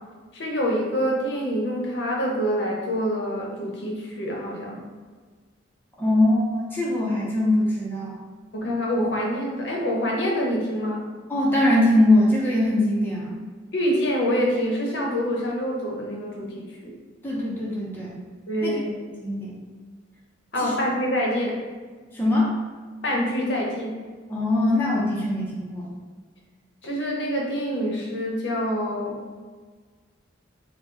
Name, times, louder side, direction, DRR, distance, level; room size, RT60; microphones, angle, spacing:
voice 1, 0.3-4.8 8.5-11.0 13.7-16.6 18.5-18.9 20.5-21.6 23.0-24.0 26.8-29.2, equal, 65° left, -1 dB, 0.7 m, -26 dB
voice 2, 6.0-8.2 11.3-13.4 17.2-18.2 18.6-18.8 19.2-19.6 20.6-20.7 22.1-22.5 24.3-25.9, left 1 dB, 10° left, -6 dB, 0.5 m, -22 dB
3.8 x 2.0 x 3.5 m, 1.5 s
head